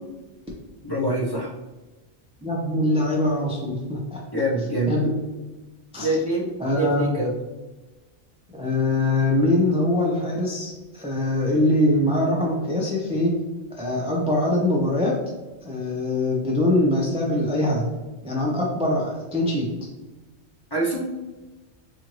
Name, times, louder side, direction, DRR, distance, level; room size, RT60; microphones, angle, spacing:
voice 1, 0.8-1.5 4.3-5.0 6.0-7.3 20.7-21.1, right 1 dB, 25° left, -4 dB, 0.6 m, -25 dB
voice 2, 2.4-4.2 4.9-5.1 5.9-6.1 6.6-7.1 8.5-13.3 13.8-15.2 15.6-17.9 18.2-19.7, left 1 dB, 10° right, -3 dB, 0.3 m, -23 dB
4.3 x 2.5 x 3.1 m, 1.2 s
omnidirectional pair, 1.2 m